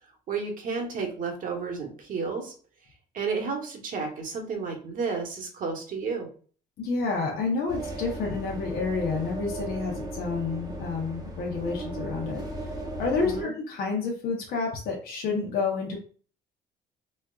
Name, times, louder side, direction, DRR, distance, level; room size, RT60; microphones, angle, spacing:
voice 1, 0.3-2.5 3.1-6.3 13.2-13.5, right 5 dB, 55° right, 2 dB, 1.1 m, -32 dB
voice 2, 6.8-12.4 13.0-16.0, left 4 dB, 65° left, -2 dB, 0.8 m, -29 dB
sound 1, 7.7-13.4, right 1 dB, 20° right, 0.8 m, -36 dB
4.2 x 2.3 x 2.3 m, 0.42 s
cardioid pair, 110°, 17 cm